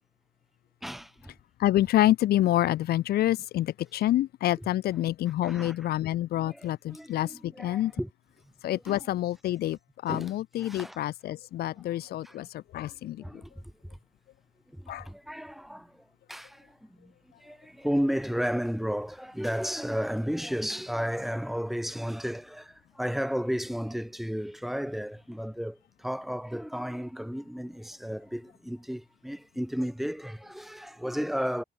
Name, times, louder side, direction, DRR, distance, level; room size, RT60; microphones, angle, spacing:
voice 1, 0.8-1.3 3.1-3.3 4.6-4.7 5.3-5.9 6.4-8.1 8.4-9.2 10.1-11.0 11.8-11.9 12.2-12.5 12.8-14.0 14.7-31.6, equal, ahead, 2.9 m, -34 dB
voice 2, 1.6-7.9 8.6-13.2 14.9-15.1, left 14 dB, 80° left, 0.5 m, -27 dB
cardioid pair, 130°, 16 cm